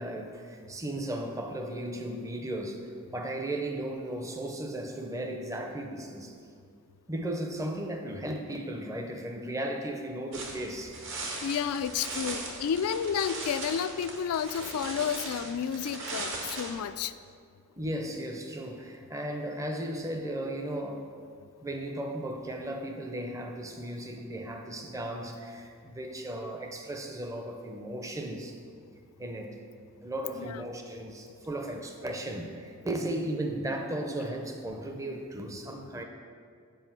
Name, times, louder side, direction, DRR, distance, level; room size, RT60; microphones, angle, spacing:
voice 1, 0.0-6.3 7.1-11.0 17.8-21.1 21.6-28.6 29.2-29.6 30.0-36.0, right 1 dB, 15° right, 3 dB, 0.5 m, -36 dB
sound 1, 10.3-16.7, right 3 dB, 60° right, 1.1 m, -39 dB
voice 2, 11.4-17.1 30.4-30.6, left 7 dB, 80° left, 12 dB, 0.3 m, -31 dB
7.8 x 4.8 x 5.8 m, 2.2 s
head